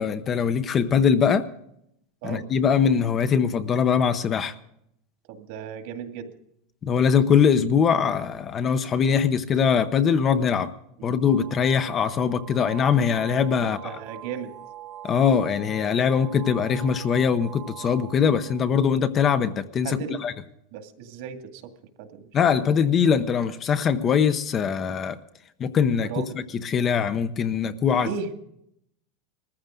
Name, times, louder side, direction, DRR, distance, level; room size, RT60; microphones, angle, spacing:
voice 1, 0.0-1.5 2.2-4.5 6.8-10.7 11.0-13.8 15.0-20.0 20.2-20.3 22.3-25.2 25.6-26.1 26.6-28.1, left 7 dB, 25° left, 10 dB, 0.8 m, -22 dB
voice 2, 5.3-6.3 11.0-11.2 13.6-14.5 19.8-20.3 20.7-21.7 22.0-22.3 25.9-26.4 28.0-28.3, right 7 dB, 60° right, 6 dB, 2.2 m, -35 dB
sound 1, 11.2-18.8, right 12 dB, 20° right, 1.3 m, -43 dB
20.5 x 14.5 x 3.8 m, 0.74 s
supercardioid pair, 160°, 0 cm